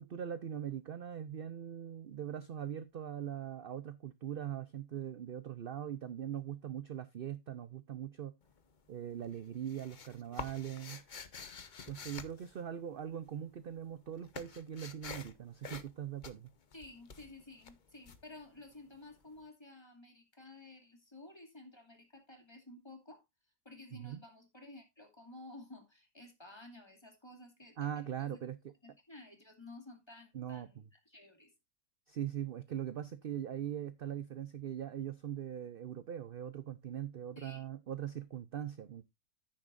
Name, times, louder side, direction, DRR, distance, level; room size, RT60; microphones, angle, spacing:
voice 1, 0.0-8.3 8.9-11.0 11.9-16.5 23.9-24.2 27.8-28.6 30.3-30.9 32.1-39.0, right 10 dB, 55° right, 0.6 m, -41 dB
sound 1, 8.4-8.9 9.2-13.3 13.6-19.1, left 5 dB, 35° left, 0.9 m, -48 dB
voice 2, 16.7-23.2 23.6-28.4 28.8-31.5 37.4-37.6, left 2 dB, 15° left, 2.5 m, -53 dB
10.5 x 9.8 x 2.5 m
omnidirectional pair, 1.6 m